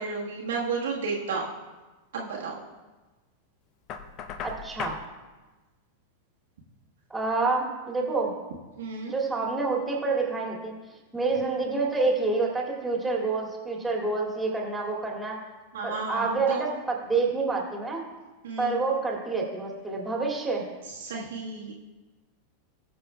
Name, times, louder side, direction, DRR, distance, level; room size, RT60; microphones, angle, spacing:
voice 1, 0.0-1.5 2.1-2.5 8.8-9.1 15.7-16.6 18.4-18.8 21.0-21.7, right 4 dB, 60° right, -4 dB, 1.4 m, -32 dB
Knock, 3.9-5.1, left 7 dB, 35° left, 0.7 m, -37 dB
voice 2, 4.4-5.0 7.1-8.3 9.1-10.7 11.1-15.4 15.8-18.0 18.6-20.6, right 3 dB, 10° right, -2 dB, 2.3 m, -28 dB
20.0 x 6.8 x 2.3 m, 1.2 s
figure-of-eight pair, 90°, 0 cm